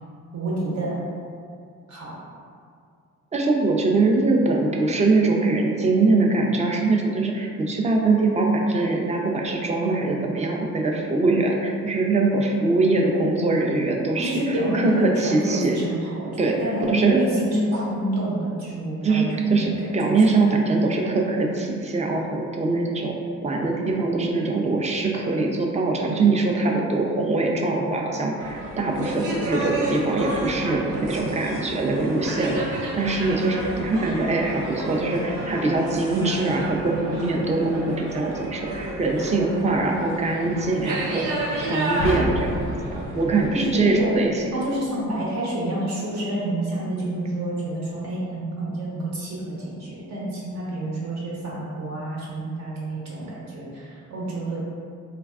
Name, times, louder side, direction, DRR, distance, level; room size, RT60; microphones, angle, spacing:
voice 1, 0.3-1.0 1.9-2.1 14.2-19.9 43.5-44.2 44.5-54.6, right 1 dB, 65° right, -6 dB, 1.0 m, -28 dB
voice 2, 3.3-15.8 16.4-16.6 16.9-17.2 19.0-23.2 23.4-44.5, right 3 dB, 25° right, 0 dB, 0.4 m, -23 dB
sound 1, 28.4-43.5, right 1 dB, 90° right, 0.6 m, -31 dB
sound 2, 42.0-44.4, left 2 dB, 45° left, 0.4 m, -31 dB
3.3 x 2.3 x 2.3 m, 2.2 s
cardioid pair, 90°, 30 cm